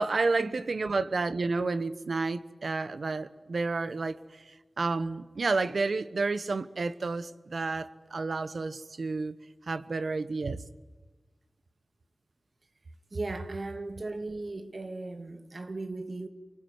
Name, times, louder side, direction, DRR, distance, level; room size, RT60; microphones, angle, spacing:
voice 1, 0.0-4.2 4.8-9.3 9.7-10.6, right 3 dB, 80° right, 1.2 m, -30 dB
voice 2, 13.1-16.3, right 2 dB, 60° right, 2.5 m, -37 dB
27.5 x 19.5 x 9.6 m
wide cardioid pair, 55°, 0 cm